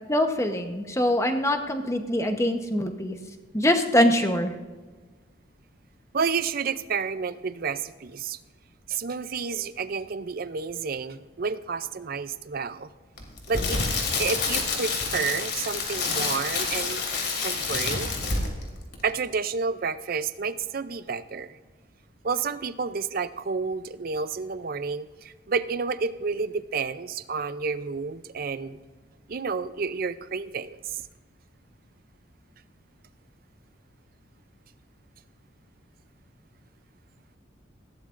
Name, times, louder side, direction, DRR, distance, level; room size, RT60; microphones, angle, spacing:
voice 1, 0.1-3.2 3.5-4.5, left 1 dB, 15° left, 5 dB, 0.9 m, -23 dB
voice 2, 6.1-8.4 8.9-12.9 13.5-13.8 14.2-17.0 17.4-18.1 19.0-21.6 22.2-28.8 29.3-31.0, right 5 dB, 45° right, 13 dB, 0.5 m, -30 dB
Crackle, 13.2-18.7 18.9-19.1, left 4 dB, 55° left, 2.9 m, -28 dB
20.5 x 15.5 x 2.5 m, 1.4 s
head